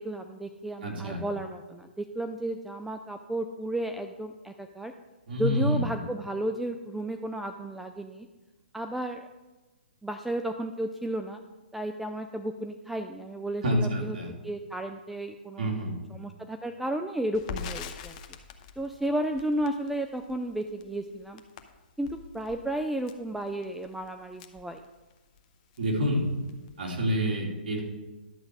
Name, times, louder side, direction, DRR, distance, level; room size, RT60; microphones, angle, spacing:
voice 1, 0.0-4.9 5.4-8.3 8.7-9.3 10.0-11.4 11.7-14.2 14.4-15.7 16.1-18.2 18.8-21.4 22.0-24.8, right 1 dB, 5° right, 6 dB, 0.4 m, -33 dB
voice 2, 0.8-1.2 5.3-5.8 13.6-14.3 15.6-15.9 25.8-26.2 26.8-27.8, equal, 60° right, 0 dB, 3.0 m, -27 dB
Crackle, 17.3-25.4 25.7-25.9 26.2-26.9, left 6 dB, 40° left, 0.9 m, -44 dB
11.0 x 7.4 x 4.7 m, 1.2 s
hypercardioid pair, 145°, 6 cm